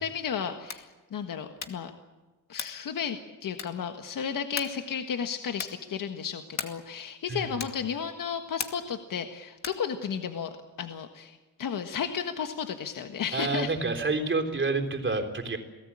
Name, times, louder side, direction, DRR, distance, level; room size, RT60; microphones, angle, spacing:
voice 1, 0.0-1.9 2.5-13.7, left 7 dB, 70° left, 6 dB, 1.6 m, -33 dB
sound 1, 0.6-1.0 1.5-1.9 2.5-2.9 3.5-3.9 4.5-4.9 5.5-5.9 6.5-6.9 7.6-7.9 8.6-9.0 9.6-9.9, left 6 dB, 50° left, 2.2 m, -38 dB
voice 2, 13.3-15.6, right 3 dB, 35° right, 3 dB, 3.7 m, -28 dB
29.0 x 18.0 x 8.8 m, 1.2 s
cardioid pair, 115°, 34 cm